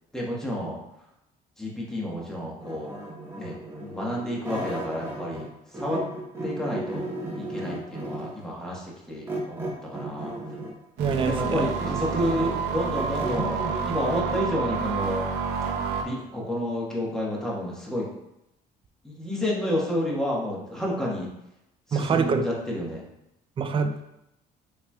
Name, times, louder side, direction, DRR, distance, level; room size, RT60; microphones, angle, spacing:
voice 1, 0.1-0.8 1.6-3.0 3.4-5.5 5.7-6.0 6.4-7.1 7.4-10.3 11.2-15.2 15.9-18.1 19.0-21.3 21.9-23.0, equal, 5° left, -5 dB, 1.3 m, -30 dB
sound 1, 2.6-5.5 5.7-8.4 9.3-10.8 11.3-13.8, right 1 dB, 15° right, 1.0 m, -35 dB
voice 2, 11.0-11.7 21.9-22.4 23.6-24.0, right 5 dB, 30° right, 7 dB, 0.4 m, -25 dB
sound 2, 11.0-16.0, right 6 dB, 90° right, 0.6 m, -29 dB
5.6 x 3.3 x 2.3 m, 0.88 s
cardioid pair, 110°, 17 cm